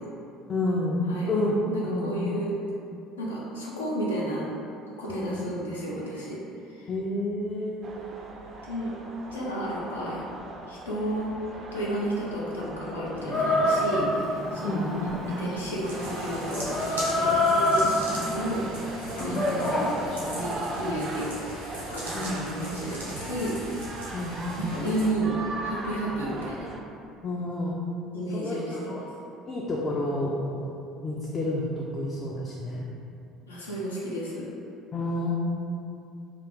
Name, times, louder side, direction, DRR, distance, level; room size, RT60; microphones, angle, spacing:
voice 1, 0.5-1.0 1.3-1.5 1.8-2.2 5.1-5.5 6.9-8.0 14.6-15.1 19.2-19.5 22.1-22.7 24.1-24.7 27.2-27.7 28.3-28.6 28.9-29.0 29.5-30.6 31.0-32.9 34.9-35.4, left 2 dB, 35° left, -4 dB, 0.4 m, -30 dB
voice 2, 1.1-2.5 3.2-4.5 5.0-6.4 6.7-6.9 8.7-8.9 9.3-10.2 10.7-11.3 11.7-14.9 15.4-17.9 18.2-18.7 19.2-19.6 20.3-21.5 21.8-23.6 24.6-26.7 28.1-29.0 33.5-34.5, right 1 dB, 85° left, -6 dB, 0.5 m, -32 dB
sound 1, 7.8-26.8, right 3 dB, 40° right, 0.3 m, -39 dB
Chicken rooster, 13.3-20.3, left 1 dB, 50° left, 1.0 m, -27 dB
sound 2, 15.8-25.1, right 1 dB, 90° right, 0.7 m, -40 dB
2.4 x 2.4 x 3.5 m, 2.6 s
figure-of-eight pair, 60°, 0 cm